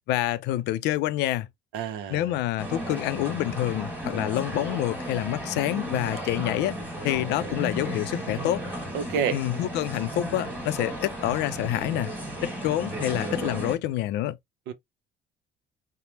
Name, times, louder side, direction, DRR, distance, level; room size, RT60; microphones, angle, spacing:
voice 1, 0.1-1.5 2.1-6.7 7.0-8.6 9.3-12.1 12.4-14.4, left 14 dB, 85° left, 0.4 m, -27 dB
voice 2, 1.7-2.3 8.9-9.4 14.7-14.8, right 7 dB, 90° right, 0.6 m, -29 dB
sound 1, 2.6-13.8, right 1 dB, 10° right, 1.5 m, -34 dB
3.2 x 2.0 x 2.8 m
cardioid pair, 110°, 17 cm